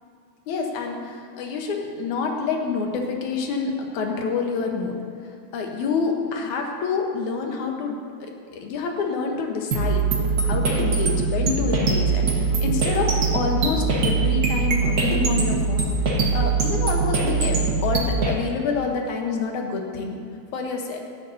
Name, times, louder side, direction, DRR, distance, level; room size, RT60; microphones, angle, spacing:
voice 1, 0.5-5.0 5.5-10.1 10.4-15.9 16.3-20.2 20.5-21.0, left 4 dB, 70° left, 2 dB, 2.5 m, -27 dB
sound 1, 9.7-18.3, right 4 dB, 45° right, 1.3 m, -22 dB
16.5 x 12.5 x 2.8 m, 2.3 s
omnidirectional pair, 3.6 m